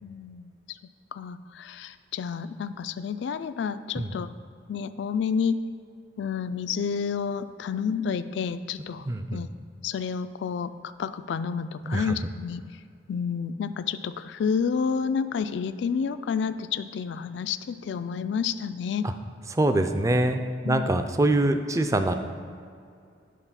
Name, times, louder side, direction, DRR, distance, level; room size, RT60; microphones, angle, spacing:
voice 1, 0.0-0.8 1.1-4.3 4.7-5.6 6.2-9.5 9.8-10.7 11.0-12.6 13.1-19.1 20.6-20.9, left 6 dB, 65° left, 12 dB, 0.3 m, -30 dB
voice 2, 9.1-9.5 11.8-12.2 19.0-19.1 19.5-22.1, right 1 dB, 15° right, 8 dB, 0.4 m, -24 dB
10.0 x 4.0 x 5.7 m, 2.3 s
head